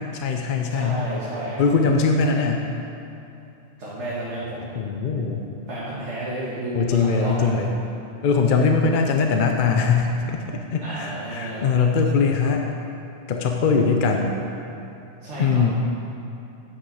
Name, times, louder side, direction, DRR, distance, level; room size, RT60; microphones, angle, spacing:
voice 1, 0.1-1.1 1.6-2.7 4.7-5.5 6.7-7.7 8.2-10.4 10.7-12.6 13.3-14.4 15.4-15.7, left 5 dB, 50° left, 3 dB, 0.7 m, -21 dB
voice 2, 0.7-1.6 3.8-4.7 5.7-7.5 10.8-11.6 15.2-15.7, right 1 dB, 70° right, -9 dB, 1.9 m, -31 dB
10.0 x 7.7 x 4.8 m, 2.7 s
omnidirectional pair, 1.3 m